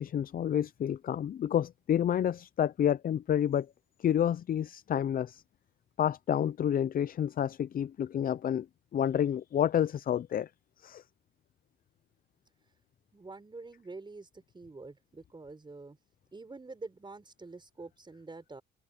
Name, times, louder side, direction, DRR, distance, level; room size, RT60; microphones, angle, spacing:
voice 1, 0.0-3.7 4.0-5.4 6.0-8.7 8.9-10.5 10.8-11.0, left 9 dB, 45° left, 0.5 m, -29 dB
voice 2, 13.1-16.0 16.3-18.6, right 3 dB, 25° right, 5.5 m, -46 dB
cardioid pair, 90°, 20 cm